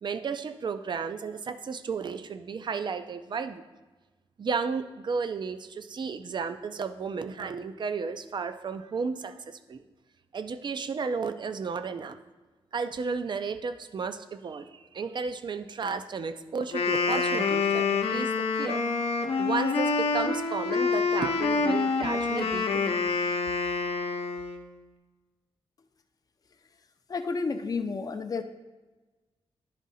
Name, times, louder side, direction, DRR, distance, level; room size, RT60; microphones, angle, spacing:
voice 1, 0.0-3.7 4.4-9.8 10.3-12.2 12.7-18.8 19.4-22.8, right 5 dB, 50° right, 11 dB, 0.5 m, -33 dB
Wind instrument woodwind instrument, 16.6-24.7, left 4 dB, 75° left, 0.7 m, -27 dB
voice 2, 27.1-28.4, left 4 dB, 40° left, 7 dB, 0.5 m, -31 dB
10.5 x 3.6 x 4.1 m, 1.2 s
wide cardioid pair, 95°, 10 cm